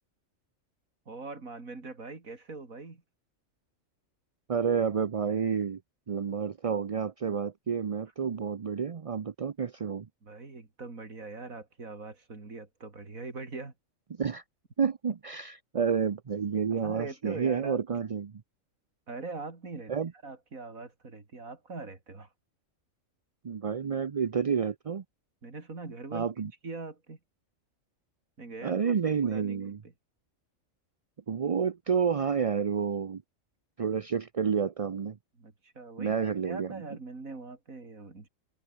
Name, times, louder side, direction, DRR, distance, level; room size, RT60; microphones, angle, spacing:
voice 1, 1.1-3.0 10.2-13.7 16.7-17.8 19.1-19.9 20.2-22.3 25.4-27.2 28.4-28.8 29.1-29.7 35.4-36.1 36.4-38.3, right 3 dB, 85° right, 3.8 m, -42 dB
voice 2, 4.5-5.8 6.1-10.1 14.2-14.4 14.8-18.3 19.9-20.1 23.4-25.0 26.1-26.5 28.6-29.8 31.3-33.2 33.8-35.2 36.0-36.8, right 6 dB, 40° right, 0.5 m, -29 dB
open air
omnidirectional pair, 1.4 m